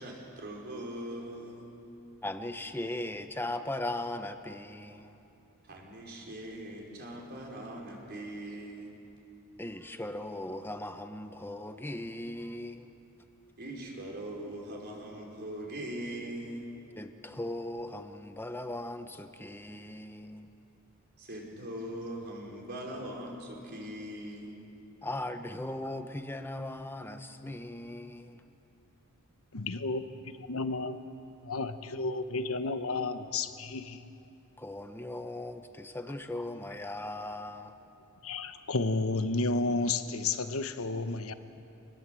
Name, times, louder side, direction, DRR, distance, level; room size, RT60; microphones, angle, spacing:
voice 1, 0.0-1.7 5.6-8.9 13.6-16.7 21.2-24.6, right 1 dB, 50° right, -1 dB, 4.6 m, -41 dB
voice 2, 2.2-5.2 9.6-12.9 17.0-20.5 25.0-28.4 34.6-37.8, left 1 dB, 10° left, 8 dB, 1.0 m, -38 dB
voice 3, 29.5-31.0 31.4-34.1 38.2-41.3, left 3 dB, 70° left, 10 dB, 1.1 m, -32 dB
27.0 x 20.0 x 7.7 m, 2.9 s
head